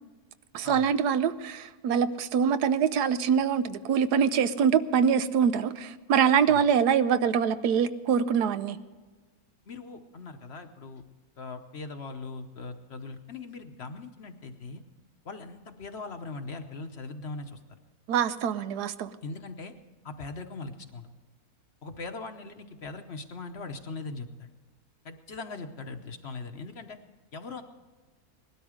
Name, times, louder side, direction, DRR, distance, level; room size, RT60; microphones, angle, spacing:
voice 1, 0.5-8.8 18.1-19.1, right 7 dB, 90° right, 12 dB, 1.3 m, -24 dB
voice 2, 9.7-11.0 11.4-14.8 15.2-17.6 19.2-19.7 20.0-21.1 21.8-24.5 25.0-27.0 27.3-27.6, left 3 dB, 50° left, 7 dB, 1.0 m, -40 dB
19.0 x 12.5 x 5.0 m, 1.3 s
omnidirectional pair, 1.7 m